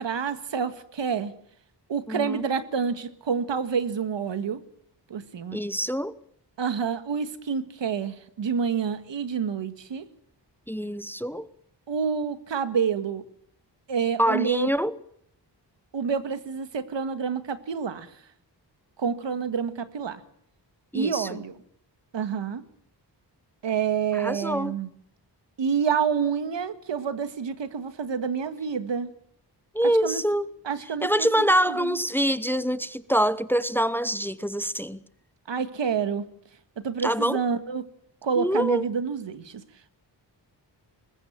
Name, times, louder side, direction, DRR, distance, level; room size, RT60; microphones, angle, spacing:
voice 1, 0.0-1.3 1.9-4.6 5.1-5.6 6.6-10.0 11.9-13.2 13.9-14.7 15.9-18.1 19.0-20.2 20.9-21.5 22.1-22.6 23.6-24.9 25.6-29.1 30.0-30.2 30.7-32.0 35.5-36.3 36.8-37.8 38.2-39.6, right 6 dB, 90° right, 1.8 m, -28 dB
voice 2, 2.1-2.5 5.5-6.1 10.7-11.5 14.2-14.9 20.9-21.4 24.1-24.8 29.7-30.5 31.0-35.0 37.0-37.4 38.4-38.8, equal, 5° left, 0.8 m, -25 dB
22.0 x 20.5 x 7.3 m
wide cardioid pair, 125°, 43 cm